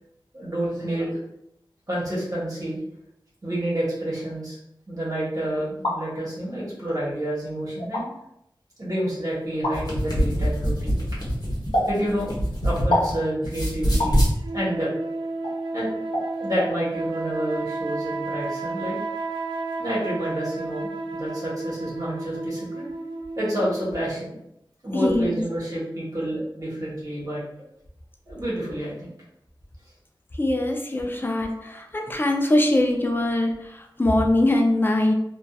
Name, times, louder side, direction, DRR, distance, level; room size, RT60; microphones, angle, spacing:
voice 1, 0.3-1.2 1.9-2.8 3.4-4.6 4.9-8.1 8.8-10.9 11.9-12.4 12.6-14.2 14.5-14.9 15.7-15.9 16.4-19.0 19.8-22.9 23.4-24.4 24.8-27.4 28.3-29.1 31.6-31.7, right 1 dB, 45° right, -8 dB, 1.1 m, -29 dB
sound 1, 5.6-6.0 6.9-7.0 7.8-8.0 9.6-9.8 11.7-11.9 12.9-13.2 14.0-14.2 15.4-15.6 16.1-16.3 16.6-16.7, left 1 dB, 85° left, 0.8 m, -24 dB
sound 2, 9.6-13.1 13.4-14.3, equal, 50° left, 0.9 m, -24 dB
sound 3, 14.4-24.1, right 3 dB, 75° right, 0.4 m, -32 dB
voice 2, 24.9-25.4 30.4-35.1, left 1 dB, 25° left, 2 dB, 0.4 m, -22 dB
2.6 x 2.2 x 2.3 m, 0.80 s
wide cardioid pair, 50°, 8 cm